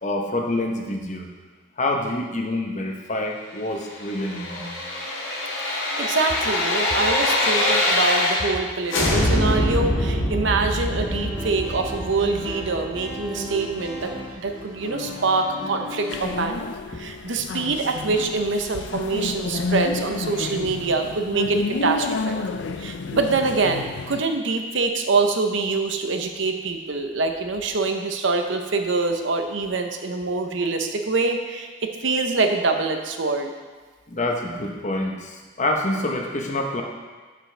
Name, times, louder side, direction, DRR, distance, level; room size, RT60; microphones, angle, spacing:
voice 1, 0.0-1.3 1.8-4.7 20.4-20.6 34.1-36.8, left 1 dB, 35° left, 1 dB, 0.8 m, -27 dB
sound 1, 3.9-8.6 8.9-13.8 14.1-14.2, left 1 dB, 85° left, 1.7 m, -24 dB
voice 2, 5.6-16.6 17.0-22.4 22.8-33.5, right 3 dB, 70° right, 5 dB, 0.7 m, -25 dB
sound 2, 10.9-16.4, left 1 dB, 20° right, 1.6 m, -35 dB
sound 3, 16.1-24.2, left 4 dB, 65° left, 0.4 m, -30 dB
12.0 x 5.3 x 3.3 m, 1.4 s
head